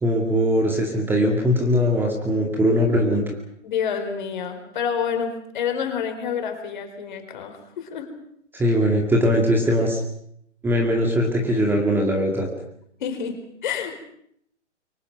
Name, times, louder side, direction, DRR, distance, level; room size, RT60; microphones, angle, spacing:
voice 1, 0.0-3.2 8.5-10.0 10.6-12.5, equal, 5° right, 1 dB, 2.2 m, -20 dB
voice 2, 3.6-8.1 13.0-13.9, left 7 dB, 40° left, 7 dB, 4.3 m, -28 dB
28.0 x 24.0 x 5.9 m, 0.70 s
figure-of-eight pair, 135°, 36 cm